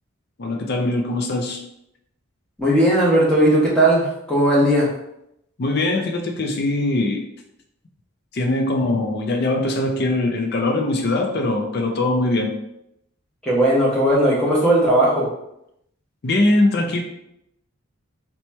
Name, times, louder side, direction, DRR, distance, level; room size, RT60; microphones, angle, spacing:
voice 1, 0.4-1.6 5.6-7.2 8.3-12.5 16.2-17.0, left 2 dB, 50° left, 3 dB, 0.4 m, -21 dB
voice 2, 2.6-4.9 13.4-15.3, right 1 dB, 5° left, -6 dB, 0.9 m, -17 dB
2.9 x 2.2 x 4.1 m, 0.80 s
head